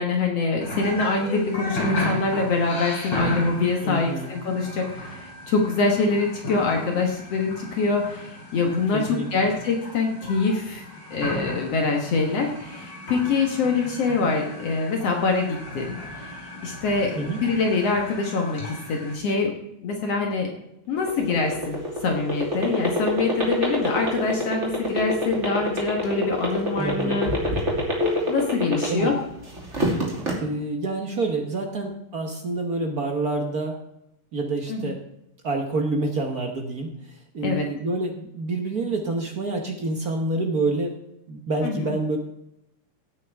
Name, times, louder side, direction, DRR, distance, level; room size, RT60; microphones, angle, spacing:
voice 1, 0.0-10.8 11.1-16.3 16.6-19.5 19.8-20.5 20.9-27.3 28.3-29.1 34.7-34.9 37.4-37.7 41.6-41.9, left 4 dB, 60° left, 2 dB, 2.3 m, -25 dB
sound 1, 0.6-19.1, left 1 dB, 35° left, 4.0 m, -35 dB
voice 2, 3.8-4.3 8.9-9.5 17.2-17.4 26.8-27.2 28.9-29.1 30.4-33.8 34.3-35.0 35.4-40.9 41.3-42.2, right 2 dB, 55° right, 3 dB, 1.0 m, -27 dB
sound 2, 21.0-29.2 29.6-30.3, left 1 dB, 25° right, 2.7 m, -24 dB
16.5 x 8.9 x 3.5 m, 0.82 s
omnidirectional pair, 3.4 m